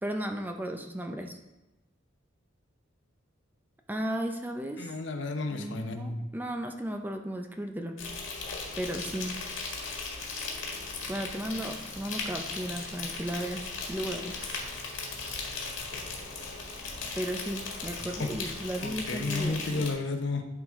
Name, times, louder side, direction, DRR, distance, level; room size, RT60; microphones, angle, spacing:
voice 1, 0.0-1.4 3.9-4.9 5.5-8.0 8.8-9.4 11.1-14.5 17.2-19.9, right 1 dB, 10° right, 4 dB, 0.5 m, -35 dB
voice 2, 4.8-6.2 18.2-18.5 18.8-20.4, left 3 dB, 65° left, 5 dB, 0.8 m, -32 dB
Insect, 8.0-19.9, left 4 dB, 80° left, 1.9 m, -37 dB
11.0 x 4.9 x 3.6 m, 1.0 s
head